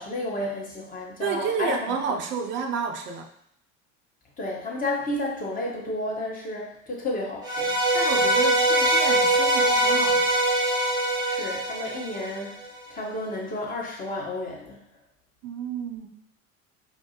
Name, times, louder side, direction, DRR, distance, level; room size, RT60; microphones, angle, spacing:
voice 1, 0.0-2.0 4.4-7.8 11.2-12.6 12.9-14.8, left 1 dB, 20° left, -3 dB, 1.2 m, -31 dB
voice 2, 1.2-3.3 7.9-10.3 15.4-16.1, right 5 dB, 30° right, 3 dB, 0.5 m, -30 dB
sound 1, 7.4-12.7, right 1 dB, 10° right, 1.0 m, -22 dB
4.3 x 2.8 x 2.8 m, 0.71 s
figure-of-eight pair, 70°, 41 cm